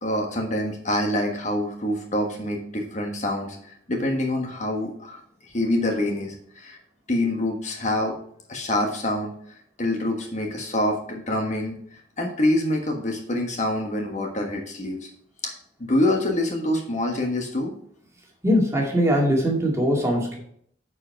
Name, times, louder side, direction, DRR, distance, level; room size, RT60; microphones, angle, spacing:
voice 1, 0.0-6.8 7.1-8.1 8.5-9.3 9.8-11.8 12.2-15.1 15.4-15.5 15.9-17.7, left 1 dB, 40° left, 2 dB, 1.4 m, -26 dB
voice 2, 18.4-20.4, equal, 15° right, -1 dB, 2.1 m, -21 dB
9.6 x 4.9 x 4.6 m, 0.64 s
head